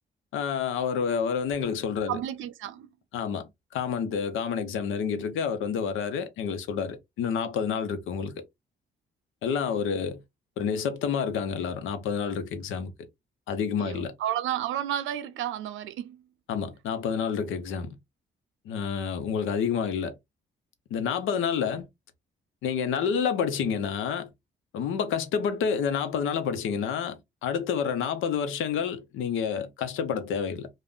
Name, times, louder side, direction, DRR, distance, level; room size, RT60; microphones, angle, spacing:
voice 1, 0.3-2.2 3.1-8.4 9.4-10.2 10.6-12.9 13.5-14.1 16.5-17.9 18.7-20.1 20.9-21.9 22.6-24.3 24.7-30.7, left 7 dB, 85° left, 0.7 m, -29 dB
voice 2, 2.1-2.9 13.8-16.3, right 11 dB, 80° right, 0.5 m, -32 dB
2.4 x 2.1 x 3.5 m
cardioid pair, 90°, 20 cm